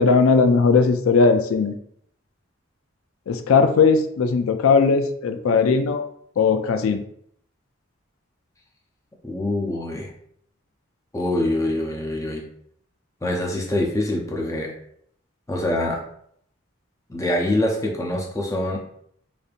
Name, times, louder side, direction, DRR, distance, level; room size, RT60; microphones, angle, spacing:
voice 1, 0.0-1.8 3.3-6.0 6.4-7.0, left 4 dB, 80° left, 8 dB, 0.4 m, -18 dB
voice 2, 9.2-10.1 11.1-12.4 13.2-14.7 15.5-16.0 17.1-18.8, left 1 dB, 15° left, 0 dB, 0.6 m, -24 dB
5.0 x 2.7 x 2.4 m, 0.68 s
head